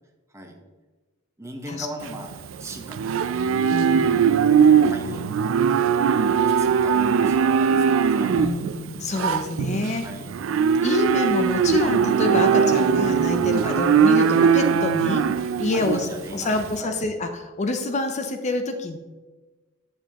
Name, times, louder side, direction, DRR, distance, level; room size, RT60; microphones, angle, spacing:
voice 1, 1.4-3.4 3.9-4.2 4.9-5.6 6.4-8.5 10.0-10.3 13.6-13.8 15.7-17.0, right 1 dB, 15° right, 2 dB, 1.0 m, -39 dB
Livestock farm animals working animals, 2.0-16.8, right 6 dB, 70° right, 0.3 m, -20 dB
voice 2, 3.7-4.3 8.3-10.1 10.8-19.0, left 2 dB, 35° left, 6 dB, 0.5 m, -27 dB
8.8 x 6.9 x 2.9 m, 1.2 s
head